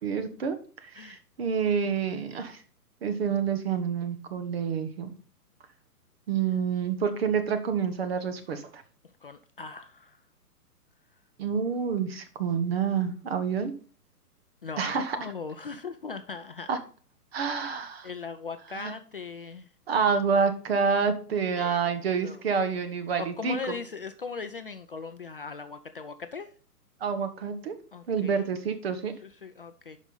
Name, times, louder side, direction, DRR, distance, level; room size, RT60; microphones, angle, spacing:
voice 1, 0.0-0.6 0.8-2.6 3.0-5.1 6.3-8.8 11.4-13.7 14.8-15.2 16.7-16.8 17.3-18.1 18.7-18.9 19.9-23.6 27.0-27.7 28.1-29.1, right 6 dB, 40° right, 9 dB, 1.3 m, -28 dB
voice 2, 9.2-10.2 14.6-16.7 17.6-17.7 18.0-19.7 21.5-22.0 22.2-22.4 23.2-26.5 27.9-28.5 29.2-30.0, left 5 dB, 35° left, 9 dB, 0.5 m, -39 dB
11.0 x 5.3 x 4.0 m, 0.41 s
figure-of-eight pair, 125°, 48 cm